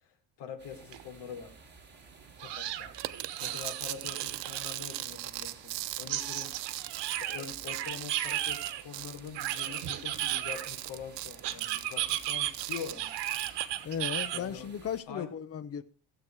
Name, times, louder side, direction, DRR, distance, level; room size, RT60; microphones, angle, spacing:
voice 1, 0.0-1.5 2.4-2.9 3.4-6.6 6.9-13.1 13.8-13.9 14.3-14.7 15.1-15.3, left 7 dB, 65° left, 3.3 m, -44 dB
sound 1, 0.6-15.0, right 4 dB, 25° right, 3.8 m, -55 dB
sound 2, 0.9-1.0 1.4-1.5 2.4-5.0 6.1-8.8 9.3-10.9 11.4-14.4, right 13 dB, 70° right, 1.4 m, -35 dB
sound 3, 3.0-13.6, right 17 dB, 85° right, 0.9 m, -40 dB
voice 2, 13.8-15.8, left 8 dB, 35° left, 0.9 m, -36 dB
16.0 x 8.0 x 4.7 m
cardioid pair, 135°, 43 cm